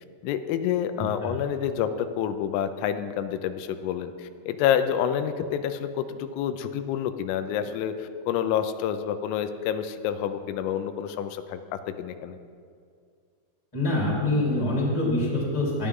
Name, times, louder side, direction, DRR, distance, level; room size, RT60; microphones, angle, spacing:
voice 1, 0.2-12.4, left 9 dB, 90° left, 9 dB, 3.3 m, -28 dB
voice 2, 13.7-15.9, left 1 dB, 5° left, -5 dB, 2.7 m, -25 dB
18.5 x 12.5 x 3.7 m, 2.3 s
omnidirectional pair, 5.8 m